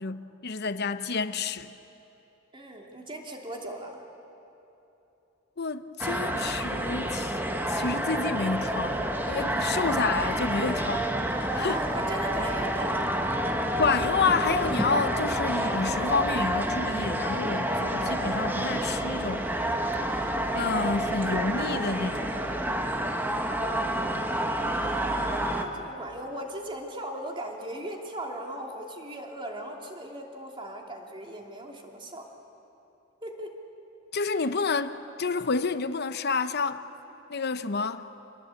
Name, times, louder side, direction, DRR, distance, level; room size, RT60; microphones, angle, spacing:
voice 1, 0.0-1.7 5.6-11.8 13.8-19.5 20.5-22.4 34.1-36.8 37.3-38.1, left 4 dB, 55° left, 0.9 m, -29 dB
voice 2, 2.5-4.0 11.6-13.1 24.6-32.3 33.2-33.6 34.2-34.5, right 1 dB, 25° right, 2.8 m, -38 dB
sound 1, 6.0-25.6, right 1 dB, 10° right, 1.5 m, -28 dB
27.5 x 21.0 x 8.5 m
head